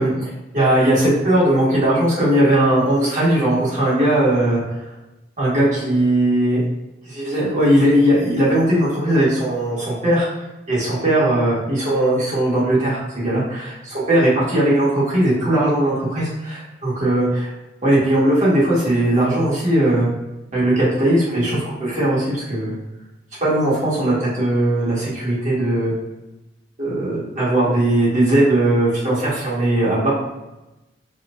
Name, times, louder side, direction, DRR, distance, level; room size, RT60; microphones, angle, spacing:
voice 1, 0.0-4.9 5.4-6.6 7.0-10.3 10.7-17.5 17.8-20.1 20.5-22.7 23.4-25.9 26.8-30.1, right 1 dB, 40° right, -8 dB, 1.5 m, -18 dB
4.2 x 2.3 x 2.5 m, 1.0 s
head